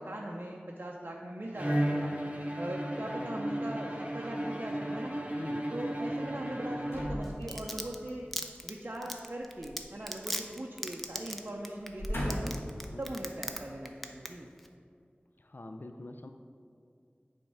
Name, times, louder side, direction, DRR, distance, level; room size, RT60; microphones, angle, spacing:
voice 1, 0.0-2.1 2.6-5.1 5.7-8.2 8.6-12.6 13.0-14.5, right 1 dB, 50° right, -2 dB, 0.6 m, -40 dB
Bowed string instrument, 1.5-7.6, right 1 dB, 30° right, 1.0 m, -34 dB
voice 2, 3.1-3.5 5.4-5.7 12.9-13.2 15.4-16.3, left 2 dB, 55° left, 6 dB, 0.4 m, -45 dB
sound 1, 6.9-8.0 9.6-10.7 11.0-11.2 11.8-12.7 13.4-13.5, equal, 85° left, 1.7 m, -38 dB
Domestic sounds home sounds, 7.2-13.6 13.8-14.3 14.6-14.7, equal, 5° left, 0.5 m, -36 dB
8.4 x 3.6 x 5.5 m, 2.4 s
wide cardioid pair, 50°, 4 cm